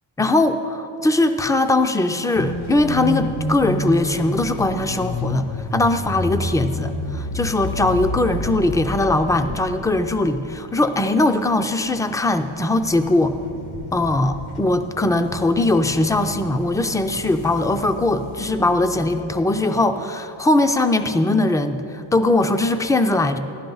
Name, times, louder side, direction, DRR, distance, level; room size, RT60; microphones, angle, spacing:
voice 1, 0.2-13.4 13.9-23.4, left 2 dB, 10° left, 8 dB, 0.3 m, -20 dB
sound 1, 2.3-10.6 11.0-11.1 11.8-12.4 12.7-19.2, left 2 dB, 85° left, 1.3 m, -30 dB
15.5 x 11.0 x 3.9 m, 2.8 s
cardioid pair, 125°, 48 cm